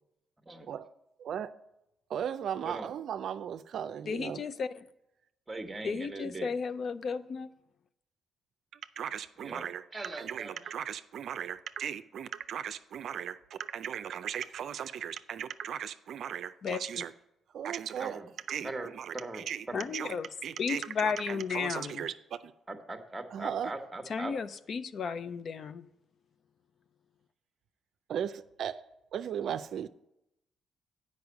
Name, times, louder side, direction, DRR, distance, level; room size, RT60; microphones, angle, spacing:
voice 1, 2.1-4.4 9.0-9.8 10.1-17.1 17.5-18.2 18.5-19.7 19.9-20.2 20.4-22.5 23.3-23.7 28.1-28.8 29.1-29.9, right 9 dB, 65° right, 0.4 m, -37 dB
voice 2, 4.1-4.7 5.8-7.5 16.6-17.0 19.7-20.3 20.6-22.1 24.1-25.9, left 5 dB, 55° left, 0.4 m, -34 dB
voice 3, 5.5-6.5 9.4-9.6 9.9-10.5 18.0-18.3 18.6-19.9 22.7-24.3, right 2 dB, 15° right, 1.2 m, -40 dB
8.0 x 5.2 x 6.9 m
cardioid pair, 90°, 0 cm